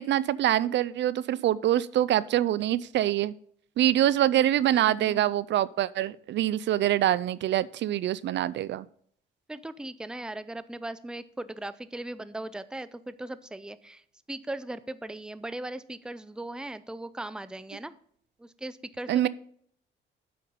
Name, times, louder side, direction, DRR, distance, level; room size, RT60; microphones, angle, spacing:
voice 1, 0.0-3.3 3.8-8.9 19.1-19.3, right 12 dB, 65° right, 19 dB, 0.4 m, -25 dB
voice 2, 4.7-5.3 9.5-14.0 14.3-17.9 18.4-19.3, right 1 dB, 5° right, 15 dB, 0.5 m, -38 dB
8.5 x 5.7 x 5.3 m, 0.63 s
cardioid pair, 90°, 20 cm